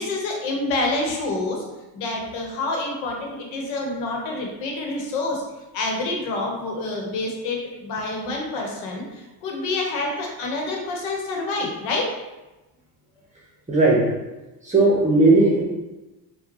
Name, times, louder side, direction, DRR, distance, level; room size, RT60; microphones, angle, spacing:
voice 1, 0.0-1.6 1.9-5.4 5.7-12.1, left 2 dB, 75° left, 1 dB, 1.1 m, -27 dB
voice 2, 13.7-14.2 14.6-15.6, right 2 dB, 15° right, -5 dB, 1.0 m, -17 dB
5.0 x 2.4 x 3.0 m, 1.1 s
supercardioid pair, 85°, 46 cm